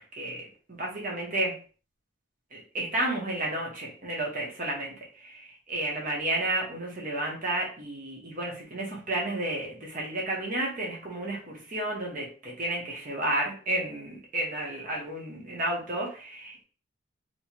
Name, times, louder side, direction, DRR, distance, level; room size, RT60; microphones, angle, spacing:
voice 1, 0.2-1.5 2.5-16.6, right 1 dB, 45° right, -2 dB, 1.2 m, -32 dB
3.1 x 3.0 x 3.0 m, 0.39 s
head